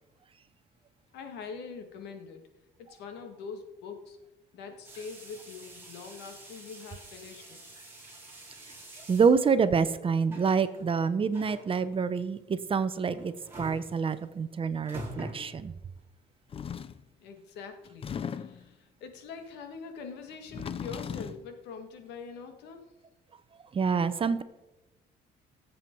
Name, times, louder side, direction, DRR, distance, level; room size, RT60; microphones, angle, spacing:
voice 1, 1.1-2.4 2.8-4.2 4.5-7.6 17.2-22.9, left 5 dB, 85° left, 6 dB, 2.0 m, -44 dB
sound 1, 4.8-16.0, right 1 dB, 15° right, 5.5 m, -47 dB
voice 2, 9.1-13.3 13.6-15.7 23.7-24.4, right 5 dB, 30° right, 13 dB, 0.8 m, -27 dB
sound 2, 16.5-17.0 17.9-18.7 20.3-21.5, left 7 dB, 35° left, 0.6 m, -37 dB
18.5 x 7.9 x 4.7 m, 1.0 s
cardioid pair, 110°, 17 cm